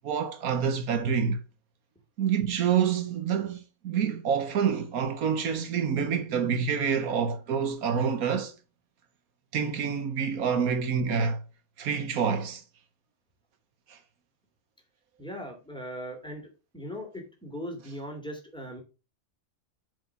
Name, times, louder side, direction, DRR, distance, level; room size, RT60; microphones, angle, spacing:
voice 1, 0.0-1.4 2.2-8.5 9.5-11.4 11.8-12.6 13.9-14.0, right 7 dB, 85° right, 1.5 m, -27 dB
voice 2, 15.2-16.5 16.7-18.8, equal, 5° left, 2.7 m, -39 dB
7.6 x 5.0 x 5.8 m
omnidirectional pair, 1.5 m